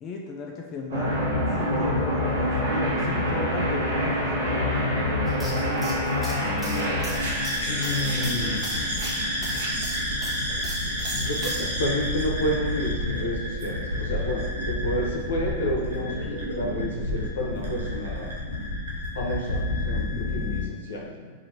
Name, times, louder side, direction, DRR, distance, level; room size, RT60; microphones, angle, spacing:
voice 1, 0.0-1.2 1.5-4.8, left 4 dB, 35° left, 0 dB, 0.5 m, -35 dB
sound 1, 0.9-20.7, left 1 dB, 75° right, 1.2 m, -27 dB
sound 2, 5.3-11.7, right 1 dB, 10° right, 1.1 m, -39 dB
voice 2, 7.7-8.8 11.1-18.3 19.1-21.3, equal, 80° left, -1 dB, 0.9 m, -30 dB
5.0 x 2.7 x 2.9 m, 1.5 s
hypercardioid pair, 110°, 0 cm